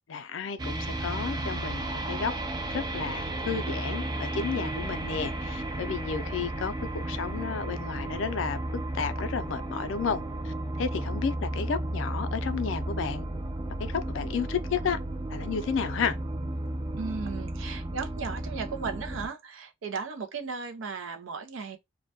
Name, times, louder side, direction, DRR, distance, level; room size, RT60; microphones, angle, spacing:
voice 1, 0.1-2.3 2.7-13.3 13.8-15.0 15.3-16.2, left 6 dB, 75° left, 0.4 m, -32 dB
sound 1, 0.6-19.3, right 1 dB, 20° right, 0.3 m, -33 dB
voice 2, 17.0-21.8, right 5 dB, 85° right, 0.5 m, -36 dB
2.2 x 2.1 x 2.7 m
head